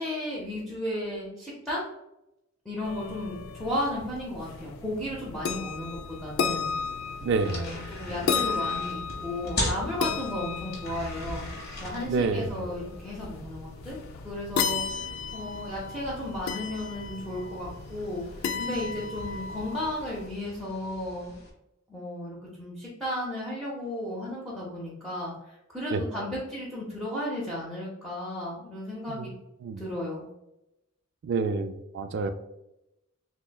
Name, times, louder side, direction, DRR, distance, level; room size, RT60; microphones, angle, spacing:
voice 1, 0.0-1.9 2.6-6.7 7.4-11.5 11.8-14.0 14.2-21.3 21.9-29.3 29.8-30.3, left 1 dB, ahead, -8 dB, 0.6 m, -34 dB
sound 1, 2.8-20.3, left 5 dB, 75° left, 0.3 m, -35 dB
sound 2, 6.5-21.5, left 1 dB, 50° left, 1.0 m, -40 dB
voice 2, 7.2-7.6 12.1-12.6 25.9-26.0 29.1-29.3 29.6-29.8 31.2-32.3, right 4 dB, 60° right, 9 dB, 0.3 m, -28 dB
5.9 x 2.1 x 2.2 m, 0.89 s
head